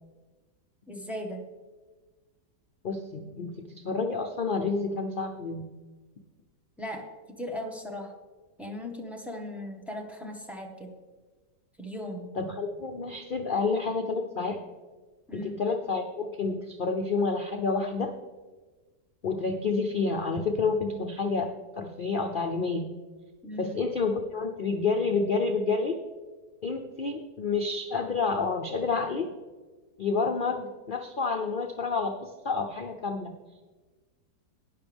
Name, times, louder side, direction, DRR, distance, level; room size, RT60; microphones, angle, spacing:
voice 1, 0.9-1.4 6.8-7.0 7.4-8.1 8.6-10.9 11.8-12.3 15.3-15.6 23.4-23.8, left 1 dB, ahead, 0 dB, 1.1 m, -37 dB
voice 2, 2.8-5.7 12.4-14.6 15.3-18.1 19.2-21.5 21.8-22.9 23.6-26.0 26.6-29.3 30.0-33.3, left 4 dB, 70° left, 4 dB, 0.4 m, -29 dB
12.0 x 10.0 x 3.5 m, 1.3 s
omnidirectional pair, 1.8 m